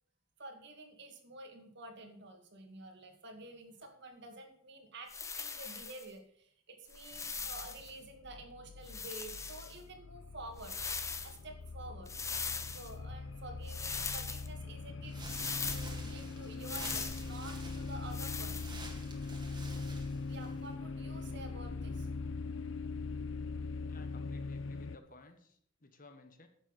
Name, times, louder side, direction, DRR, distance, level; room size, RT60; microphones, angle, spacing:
voice 1, 0.4-10.8 11.2-12.1 12.7-15.2 15.6-18.8 19.2-19.3 20.3-22.4, right 2 dB, 60° right, 4 dB, 2.1 m, -50 dB
Foley Movement High Grass Mono, 5.1-6.1 6.9-7.9 8.8-9.8 10.6-11.4 12.1-12.9 13.7-14.5 15.2-15.9 16.6-17.3 18.1-18.7, left 5 dB, 15° left, 0.6 m, -40 dB
sound 1, 7.1-25.0, left 3 dB, 65° left, 0.6 m, -42 dB
sound 2, 15.0-20.7, right 2 dB, 20° right, 1.9 m, -49 dB
voice 2, 23.9-26.5, left 2 dB, 45° left, 7 dB, 1.3 m, -57 dB
10.0 x 7.4 x 6.5 m, 0.65 s
head